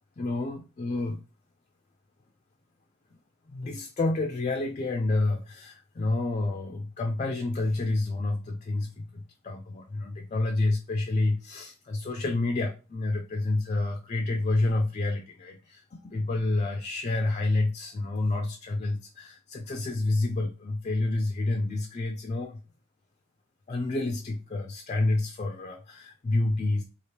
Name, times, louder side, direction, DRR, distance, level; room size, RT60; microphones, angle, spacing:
voice 1, 0.2-1.2 3.5-22.6 23.7-26.8, left 2 dB, 35° left, 3 dB, 0.4 m, -29 dB
3.2 x 2.4 x 2.8 m, 0.32 s
head